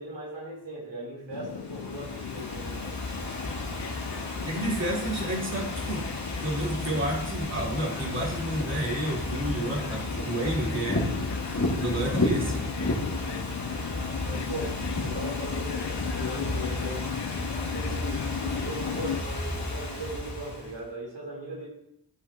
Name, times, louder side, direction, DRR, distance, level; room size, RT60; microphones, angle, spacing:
voice 1, 0.0-3.0 10.3-10.5 13.2-13.4 14.3-17.1 17.5-21.7, right 2 dB, 90° right, -4 dB, 4.2 m, -39 dB
sound 1, 1.3-19.2, left 8 dB, 75° left, 0.6 m, -37 dB
Ocean / Fireworks, 1.5-20.8, left 1 dB, 40° left, 2.6 m, -33 dB
voice 2, 4.4-6.1 6.4-11.1 11.7-12.6, right 1 dB, 35° right, -6 dB, 4.3 m, -30 dB
16.0 x 8.1 x 3.1 m, 0.78 s
wide cardioid pair, 95°, 42 cm